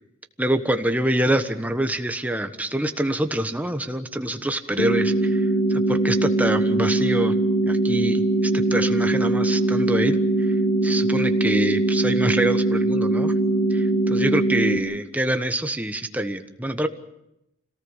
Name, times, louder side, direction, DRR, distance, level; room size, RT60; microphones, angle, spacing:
voice 1, 0.4-7.4 7.7-10.6 10.8-13.3 13.7-16.9, right 1 dB, 10° right, 7 dB, 1.3 m, -25 dB
sound 1, 4.8-14.8, right 2 dB, 85° left, 2.4 m, -21 dB
26.5 x 18.0 x 7.3 m, 0.86 s
head